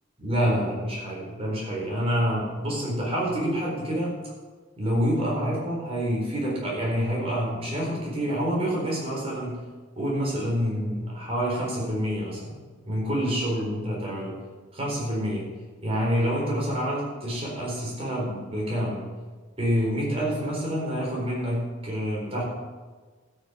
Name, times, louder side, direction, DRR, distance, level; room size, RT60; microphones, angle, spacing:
voice 1, 0.2-4.1 4.8-9.6 10.0-12.6 12.9-14.3 14.7-15.4 15.8-19.0 19.6-22.4, equal, 25° right, -4 dB, 4.3 m, -27 dB
13.0 x 6.8 x 7.5 m, 1.4 s
head